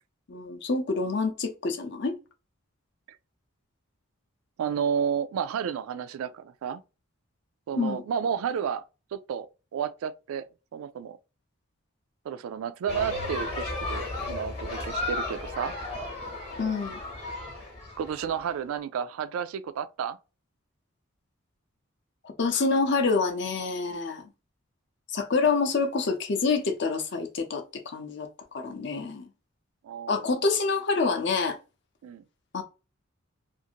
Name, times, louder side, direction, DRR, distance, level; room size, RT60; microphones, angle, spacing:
voice 1, 0.3-2.2 7.8-8.0 16.6-17.0 22.4-24.2 25.1-28.3 28.5-29.3 30.1-31.6 32.5-32.6, left 4 dB, 55° left, 0.5 m, -27 dB
voice 2, 4.6-6.8 7.7-8.8 9.1-9.5 9.7-11.2 12.3-15.8 18.0-20.2 29.8-30.3 32.0-32.2, right 7 dB, 80° right, 0.3 m, -31 dB
sound 1, 12.9-18.4, left 2 dB, 30° left, 0.8 m, -34 dB
2.5 x 2.5 x 2.7 m
head